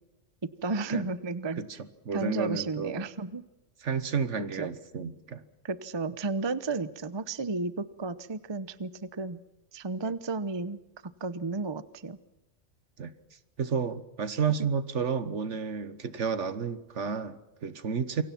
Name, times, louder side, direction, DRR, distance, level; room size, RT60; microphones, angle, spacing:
voice 1, 0.4-1.6 2.1-3.4 4.5-4.7 5.6-9.4 9.7-12.2 14.6-14.7, right 3 dB, 25° right, 14 dB, 0.7 m, -33 dB
voice 2, 1.6-3.0 3.8-5.4 10.0-10.1 13.0-13.1 13.6-18.2, right 6 dB, 65° right, 12 dB, 1.6 m, -31 dB
27.5 x 23.5 x 6.0 m, 0.98 s
omnidirectional pair, 1.3 m